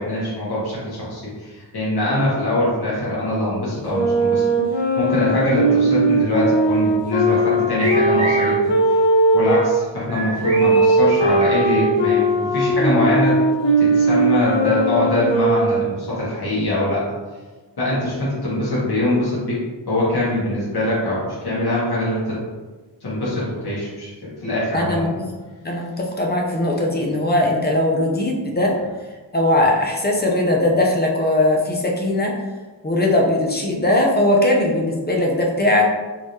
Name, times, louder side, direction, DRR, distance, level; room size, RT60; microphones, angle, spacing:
voice 1, 0.0-4.4 4.7-8.6 9.3-13.4 13.8-17.0 17.8-19.6 19.9-22.4 23.0-25.2, left 1 dB, 60° left, -8 dB, 1.4 m, -23 dB
sound 1, 3.9-9.7 10.4-16.0, right 2 dB, 75° left, 0.8 m, -18 dB
sound 2, 7.8-8.6 10.1-11.6, right 1 dB, 35° right, 0.9 m, -29 dB
voice 2, 24.7-25.3 25.6-28.7 29.3-32.3 32.8-35.9, left 1 dB, 25° left, -1 dB, 0.4 m, -19 dB
3.7 x 3.1 x 2.6 m, 1.3 s
wide cardioid pair, 175°, 43 cm